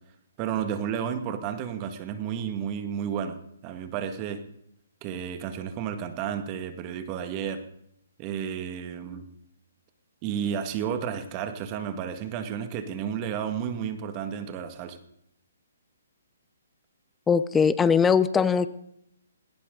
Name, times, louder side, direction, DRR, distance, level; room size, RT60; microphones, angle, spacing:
voice 1, 0.4-4.4 5.0-7.6 8.2-9.2 10.2-15.0, right 8 dB, 30° right, 8 dB, 2.0 m, -32 dB
voice 2, 17.3-18.7, left 6 dB, 10° left, 15 dB, 0.7 m, -21 dB
19.5 x 18.5 x 4.0 m, 0.75 s
hypercardioid pair, 145°, 0 cm